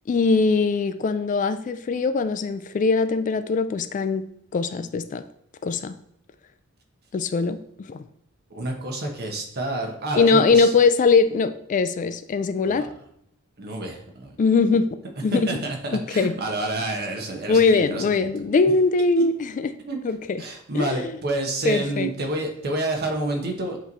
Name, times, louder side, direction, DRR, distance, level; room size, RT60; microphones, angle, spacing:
voice 1, 0.1-4.3 4.5-5.2 5.6-5.9 7.1-8.0 10.2-12.9 14.4-14.9 15.2-15.6 15.9-16.3 17.5-19.7 20.0-20.4 20.7-21.0 21.6-22.1, left 4 dB, 35° left, 11 dB, 0.3 m, -21 dB
voice 2, 8.5-10.7 12.6-12.9 13.6-14.3 15.3-18.3 19.8-20.0 20.4-23.8, right 2 dB, 50° right, 3 dB, 1.1 m, -29 dB
7.9 x 3.1 x 4.1 m, 0.71 s
head